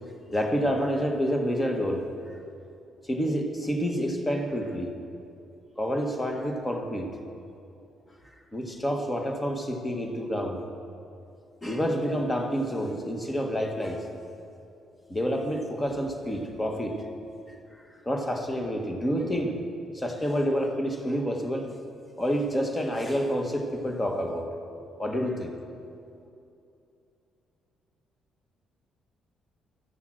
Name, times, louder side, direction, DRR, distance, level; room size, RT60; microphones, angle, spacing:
voice 1, 0.3-2.4 3.0-5.0 5.8-7.2 8.3-10.6 11.6-14.1 15.1-17.1 17.7-19.6 19.9-21.8 22.2-24.6 25.0-25.6, equal, 15° left, 3 dB, 1.3 m, -28 dB
13.5 x 8.3 x 6.3 m, 2.7 s
cardioid pair, 130°, 0 cm